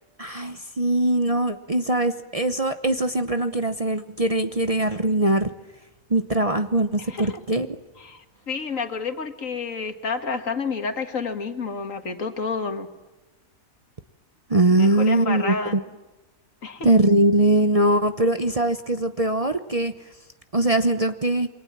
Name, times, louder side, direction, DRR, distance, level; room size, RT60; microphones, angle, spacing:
voice 1, 0.2-5.5 6.1-7.7 14.5-15.8 16.8-19.9 20.5-21.5, right 1 dB, 30° right, 8 dB, 0.9 m, -21 dB
voice 2, 7.0-7.4 8.0-12.9 14.8-15.7 16.6-16.9, left 5 dB, 70° left, 7 dB, 2.2 m, -30 dB
28.5 x 22.5 x 7.5 m, 1.1 s
omnidirectional pair, 1.4 m